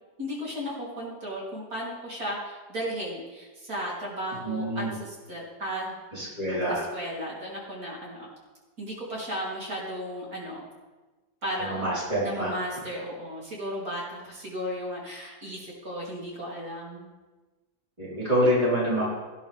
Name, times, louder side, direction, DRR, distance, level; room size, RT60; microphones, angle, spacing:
voice 1, 0.2-6.3 6.7-8.3 8.8-10.6 11.4-11.9 12.2-17.1, equal, 60° right, -5 dB, 4.0 m, -35 dB
voice 2, 4.4-4.9 6.1-6.8 11.6-12.5 18.0-19.0, equal, 20° right, -8 dB, 4.7 m, -26 dB
17.5 x 11.0 x 3.6 m, 1.2 s
omnidirectional pair, 1.8 m